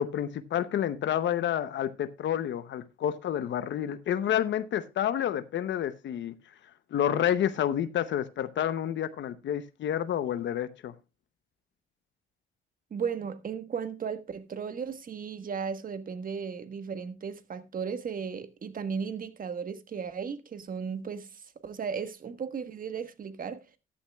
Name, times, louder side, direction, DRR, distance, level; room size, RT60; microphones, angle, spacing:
voice 1, 0.0-6.3 6.9-10.9, left 10 dB, 65° left, 0.8 m, -29 dB
voice 2, 12.9-23.6, right 6 dB, 45° right, 1.3 m, -35 dB
14.0 x 11.5 x 2.3 m
cardioid pair, 90°, 20 cm